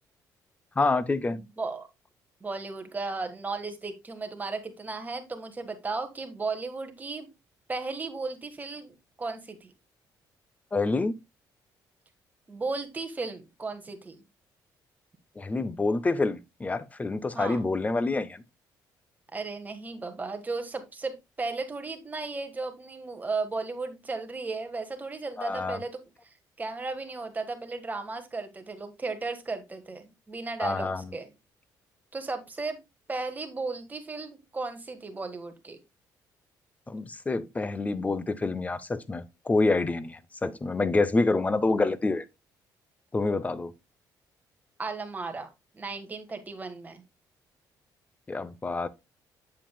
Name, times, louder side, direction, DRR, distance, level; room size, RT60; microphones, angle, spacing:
voice 1, 0.8-1.4 10.7-11.1 15.4-18.4 25.4-25.8 30.6-31.1 36.9-42.2 43.1-43.7 48.3-48.9, left 3 dB, 20° left, 0.6 m, -27 dB
voice 2, 1.3-1.9 2.4-7.3 7.7-9.7 12.5-14.2 17.3-17.6 19.3-31.3 32.1-32.8 33.1-35.8 44.8-45.5 45.7-47.0, right 3 dB, 20° right, 1.5 m, -35 dB
7.4 x 7.3 x 2.2 m
cardioid pair, 100°, 7 cm